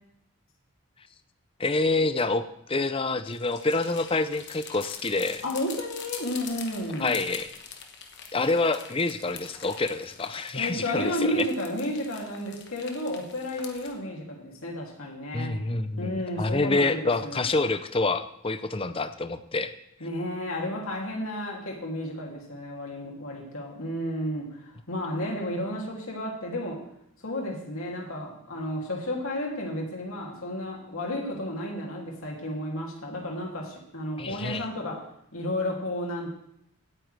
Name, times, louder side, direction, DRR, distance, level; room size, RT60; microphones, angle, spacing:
voice 1, 1.6-5.4 7.0-7.5 8.3-11.4 15.3-19.7 34.2-34.7, left 3 dB, 25° left, 11 dB, 0.6 m, -27 dB
sound 1, 3.3-13.9, left 7 dB, 50° left, 1.3 m, -44 dB
voice 2, 5.4-7.2 10.5-15.6 16.0-17.4 20.0-26.8 27.2-35.1 35.3-36.3, left 1 dB, 70° left, -1 dB, 2.8 m, -32 dB
17.0 x 8.9 x 3.4 m, 0.76 s
head